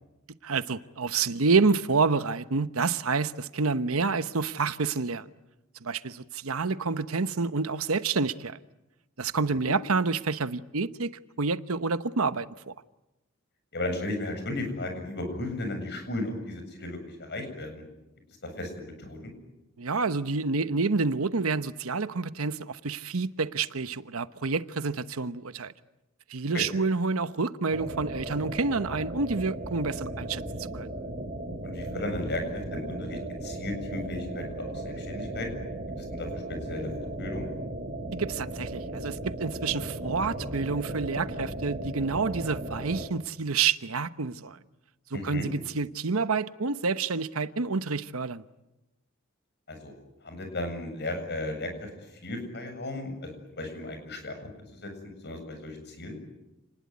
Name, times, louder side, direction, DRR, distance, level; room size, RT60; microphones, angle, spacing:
voice 1, 0.4-5.3 5.8-8.6 9.2-12.7 19.8-25.7 26.3-30.4 30.7-30.9 38.1-44.6 45.1-48.4, right 4 dB, 85° right, 1.0 m, -28 dB
voice 2, 13.7-17.8 18.6-19.3 26.5-26.7 31.6-35.5 36.0-36.9 37.2-37.5 45.1-45.5 49.7-49.9 50.2-51.7 52.2-54.5 54.8-54.9 55.2-56.2, left 2 dB, 55° left, 7.6 m, -35 dB
sound 1, 27.7-43.1, right 1 dB, 40° right, 4.1 m, -36 dB
29.5 x 20.0 x 9.6 m
head